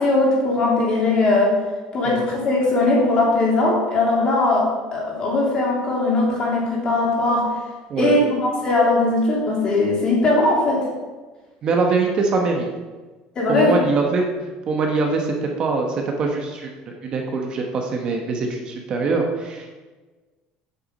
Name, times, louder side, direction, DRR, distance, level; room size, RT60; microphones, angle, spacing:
voice 1, 0.0-1.6 1.9-7.5 8.0-10.8 13.4-13.8, left 2 dB, 30° left, -3 dB, 2.9 m, -19 dB
voice 2, 11.6-12.7 13.5-14.3 14.7-16.7 17.0-19.7, right 4 dB, 35° right, 2 dB, 1.0 m, -23 dB
8.2 x 6.9 x 5.3 m, 1.3 s
cardioid pair, 160°, 3 cm